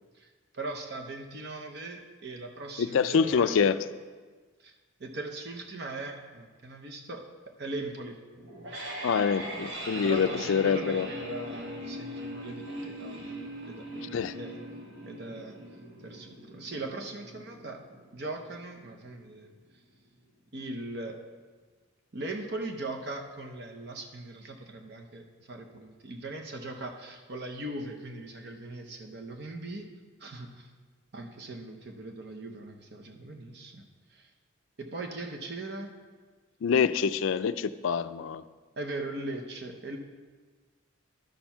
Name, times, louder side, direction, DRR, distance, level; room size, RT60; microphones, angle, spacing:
voice 1, 0.2-3.7 4.6-4.7 5.0-7.2 7.6-8.1 9.9-13.4 13.7-14.6 15.0-15.6 16.0-17.8 18.1-19.5 20.5-21.2 22.1-29.9 30.2-30.7 31.1-33.8 34.1-34.3 34.8-35.9 38.8-40.0, right 2 dB, 50° right, 3 dB, 0.8 m, -40 dB
voice 2, 2.8-3.8 9.0-11.1 14.0-14.3 36.6-38.4, left 6 dB, 70° left, 13 dB, 0.3 m, -26 dB
sound 1, 8.4-19.4, equal, 70° right, 1.4 m, -41 dB
12.0 x 4.5 x 5.6 m, 1.4 s
head